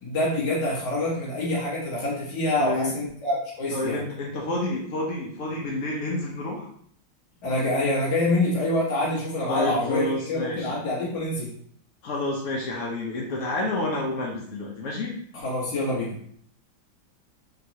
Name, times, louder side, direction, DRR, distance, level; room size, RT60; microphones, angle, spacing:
voice 1, 0.0-4.0 7.4-10.0 10.3-11.5 15.4-16.2, left 1 dB, 60° left, -7 dB, 1.6 m, -26 dB
voice 2, 2.6-3.0 3.7-6.6 9.5-10.8 12.0-15.1, left 2 dB, 80° left, -2 dB, 0.7 m, -29 dB
3.8 x 3.0 x 2.8 m, 0.63 s
omnidirectional pair, 2.2 m